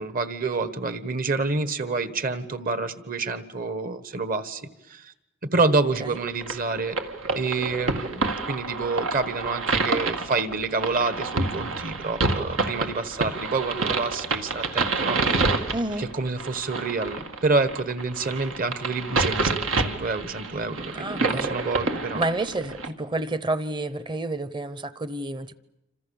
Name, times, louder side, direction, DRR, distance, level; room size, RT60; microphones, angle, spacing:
voice 1, 0.0-5.1 5.5-7.0 7.3-15.5 16.0-22.2, right 3 dB, 45° right, 12 dB, 1.4 m, -28 dB
sound 1, 6.2-22.9, right 3 dB, 85° right, 2.1 m, -28 dB
voice 2, 15.7-16.1 20.9-21.5 22.1-25.6, right 2 dB, 25° right, 15 dB, 0.9 m, -29 dB
27.5 x 26.5 x 7.1 m, 0.90 s
head